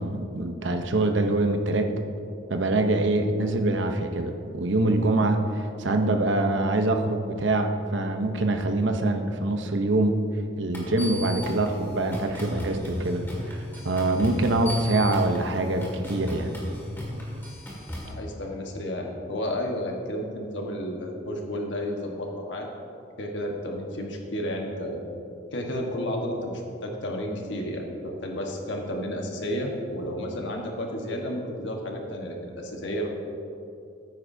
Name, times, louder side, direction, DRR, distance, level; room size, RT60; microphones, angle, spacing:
voice 1, 0.0-1.9 2.5-10.2 10.6-16.5, right 2 dB, 80° right, 5 dB, 0.8 m, -24 dB
sound 1, 10.7-18.1, equal, 10° left, 2.0 m, -36 dB
voice 2, 18.0-22.7 23.2-25.0 25.5-33.1, equal, 80° left, 1 dB, 1.3 m, -32 dB
14.0 x 9.4 x 2.7 m, 2.6 s
head